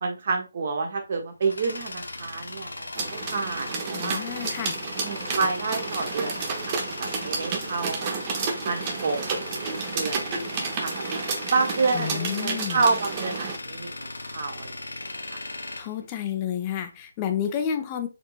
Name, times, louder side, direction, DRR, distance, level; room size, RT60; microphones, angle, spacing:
voice 1, 0.0-4.2 5.0-8.2 8.6-9.4 9.9-11.0 11.5-14.7 15.3-15.4, right 4 dB, 50° right, 4 dB, 1.1 m, -29 dB
Tools, 1.0-16.8, left 2 dB, 80° left, 0.6 m, -37 dB
sound 1, 3.0-13.6, right 4 dB, 30° right, 0.8 m, -31 dB
voice 2, 3.9-4.8 11.9-12.8 15.8-18.1, left 9 dB, 25° left, 7 dB, 0.6 m, -30 dB
4.4 x 2.8 x 2.4 m, 0.27 s
figure-of-eight pair, 150°, 0 cm